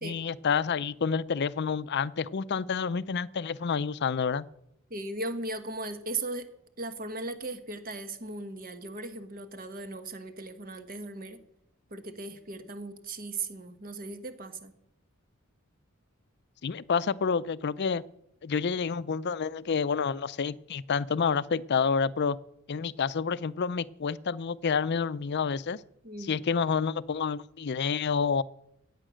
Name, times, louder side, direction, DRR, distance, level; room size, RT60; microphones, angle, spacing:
voice 1, 0.0-4.5 16.6-18.0 18.4-22.4 22.7-25.8 26.2-28.4, left 5 dB, 50° left, 18 dB, 0.5 m, -29 dB
voice 2, 4.9-6.5 6.8-11.4 11.9-14.7 26.0-26.3, right 2 dB, 40° right, 10 dB, 1.2 m, -37 dB
15.5 x 8.7 x 6.3 m, 0.78 s
head